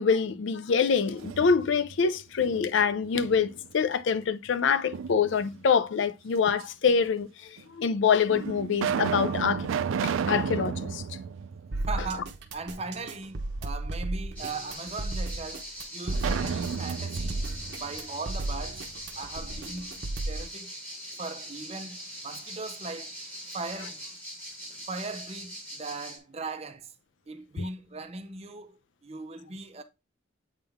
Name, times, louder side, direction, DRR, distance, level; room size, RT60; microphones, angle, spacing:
voice 1, 0.0-9.7 10.0-11.0, left 6 dB, 65° left, 0.4 m, -25 dB
sound 1, 1.0-2.0 2.4-3.7 4.9-5.7 6.6-6.7 7.6-7.7 8.3-12.4 12.7-12.8 16.1-18.9, right 7 dB, 80° right, 0.3 m, -33 dB
sound 2, 11.7-20.4, right 2 dB, 55° right, 0.9 m, -34 dB
voice 2, 11.8-17.5 17.8-18.8 19.2-20.7 21.2-23.1 23.5-24.0 24.9-26.9 27.3-29.8, right 3 dB, 30° right, 0.6 m, -39 dB
sound 3, 14.4-26.2, equal, 10° left, 1.6 m, -42 dB
8.1 x 3.5 x 3.5 m
head